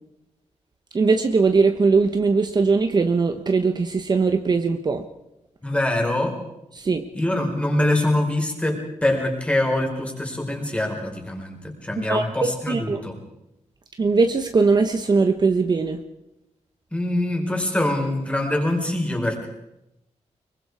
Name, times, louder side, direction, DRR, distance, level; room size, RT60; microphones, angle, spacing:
voice 1, 0.9-5.0 6.8-7.1 12.1-13.0 14.0-16.0, right 4 dB, 35° right, 6 dB, 1.2 m, -20 dB
voice 2, 5.6-6.4 7.1-13.2 16.9-19.5, left 1 dB, 10° left, 1 dB, 4.8 m, -24 dB
25.0 x 23.0 x 4.9 m, 0.88 s
wide cardioid pair, 170°, 12 cm